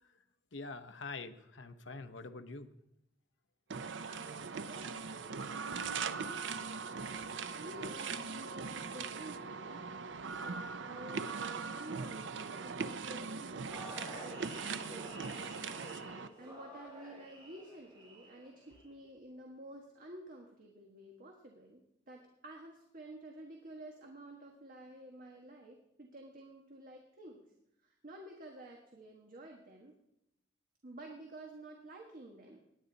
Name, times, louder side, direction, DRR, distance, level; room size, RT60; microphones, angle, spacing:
voice 1, 0.5-2.7, left 3 dB, 75° left, 9 dB, 0.9 m, -45 dB
sound 1, 3.7-16.3, right 5 dB, 70° right, 0.7 m, -40 dB
voice 2, 4.0-6.4 7.5-9.8 10.4-15.1 16.4-27.4 27.8-29.9 30.8-32.6, right 1 dB, 50° right, 1 dB, 1.5 m, -51 dB
sound 2, 13.7-18.8, right 1 dB, 25° right, 5.3 m, -50 dB
18.0 x 10.5 x 4.0 m, 0.81 s
head